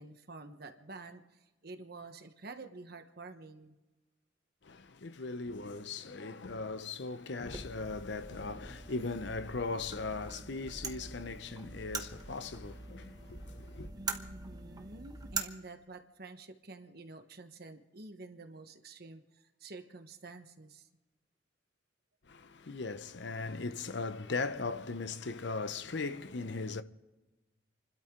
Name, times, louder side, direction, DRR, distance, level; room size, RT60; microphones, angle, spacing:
voice 1, 0.0-3.7 13.9-20.9, right 3 dB, 55° right, 1.2 m, -49 dB
voice 2, 4.6-13.9 22.3-26.8, left 3 dB, 60° left, 0.8 m, -38 dB
sound 1, 7.4-15.4, right 4 dB, 20° right, 1.0 m, -43 dB
29.5 x 12.5 x 3.8 m
head